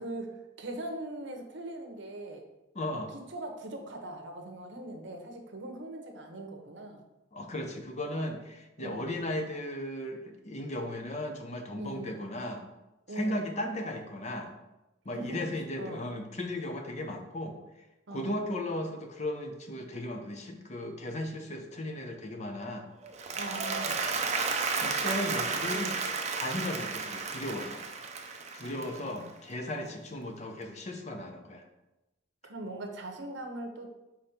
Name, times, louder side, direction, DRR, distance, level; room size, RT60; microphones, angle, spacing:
voice 1, 0.0-2.4 3.3-7.0 8.8-9.1 11.8-12.2 13.1-13.5 15.1-15.5 15.8-16.0 18.1-18.4 23.3-24.1 25.7-26.0 28.6-29.3 29.7-30.0 32.4-34.0, right 1 dB, 65° right, 4 dB, 0.9 m, -41 dB
voice 2, 2.7-3.1 7.3-12.6 13.1-14.5 15.0-17.6 18.1-22.9 24.8-25.9 26.3-27.8 28.5-31.7, left 1 dB, 35° left, 4 dB, 0.7 m, -36 dB
Applause, 23.0-29.4, right 4 dB, 35° right, 0.6 m, -33 dB
5.2 x 4.3 x 4.3 m, 0.98 s
head